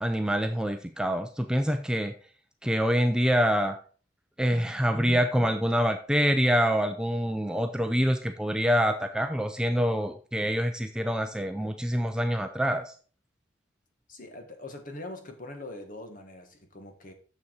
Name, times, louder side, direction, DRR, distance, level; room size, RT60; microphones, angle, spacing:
voice 1, 0.0-2.1 2.6-3.8 4.4-12.9, equal, 5° right, 6 dB, 0.5 m, -26 dB
voice 2, 14.1-17.1, left 2 dB, 45° left, 5 dB, 1.5 m, -42 dB
7.1 x 6.8 x 4.6 m, 0.40 s
head